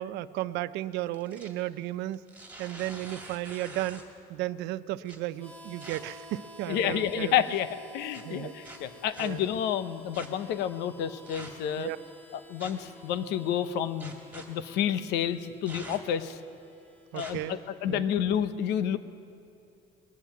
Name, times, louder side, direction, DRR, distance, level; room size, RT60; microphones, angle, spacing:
voice 1, 0.0-2.2 2.6-4.0 4.3-7.3 8.2-8.6 9.2-9.4 11.8-12.0 17.1-17.6 17.9-18.1, right 15 dB, 90° right, 16 dB, 0.5 m, -34 dB
sound 1, 1.0-1.6 2.1-4.2 5.1-5.2 5.8-6.0 6.7-7.1 8.1-8.2 8.6-9.3 10.1-10.3 11.3-11.7 12.6-12.9 14.0-14.5 15.7-16.2 17.1-17.3, right 2 dB, 10° right, 2.4 m, -45 dB
Harmonica, 5.3-18.0, equal, 10° left, 1.7 m, -52 dB
voice 2, 6.7-7.7 7.9-11.9 12.3-16.4 17.1-19.0, left 9 dB, 90° left, 12 dB, 0.8 m, -30 dB
20.0 x 7.4 x 9.2 m, 2.5 s
cardioid pair, 110°, 17 cm